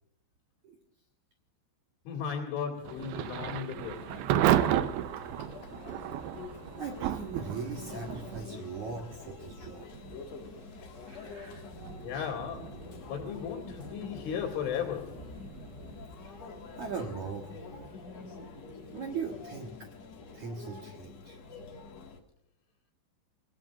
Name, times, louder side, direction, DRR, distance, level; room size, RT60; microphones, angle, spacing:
voice 1, 2.1-4.2 12.0-15.3, left 7 dB, 80° left, -4 dB, 5.0 m, -36 dB
Thunder / Rain, 2.8-19.5, right 11 dB, 90° right, 2.3 m, -35 dB
Conversation / Chatter / Crowd, 3.8-22.2, left 4 dB, 50° left, 2.1 m, -46 dB
voice 2, 6.7-9.9 11.1-11.7 16.3-16.5 16.8-17.8 18.9-19.9 20.3-21.4, right 5 dB, 65° right, 1 dB, 1.9 m, -40 dB
29.5 x 17.5 x 2.5 m, 0.73 s
omnidirectional pair, 5.5 m